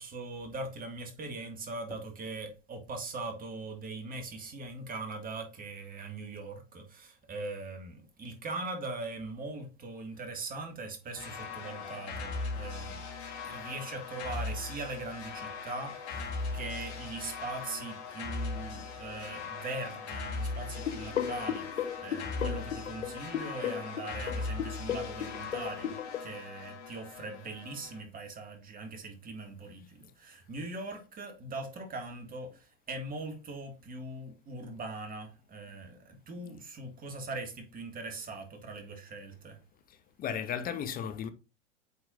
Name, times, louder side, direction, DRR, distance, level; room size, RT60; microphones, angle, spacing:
voice 1, 0.0-13.0 13.4-39.6, right 3 dB, 25° right, 1.8 m, -41 dB
sound 1, 11.1-28.0, left 4 dB, 60° left, 2.1 m, -39 dB
sound 2, 20.8-26.2, left 9 dB, 85° left, 0.6 m, -36 dB
voice 2, 39.9-41.3, left 8 dB, 25° left, 0.7 m, -36 dB
8.3 x 4.7 x 2.5 m
hypercardioid pair, 100°, 37 cm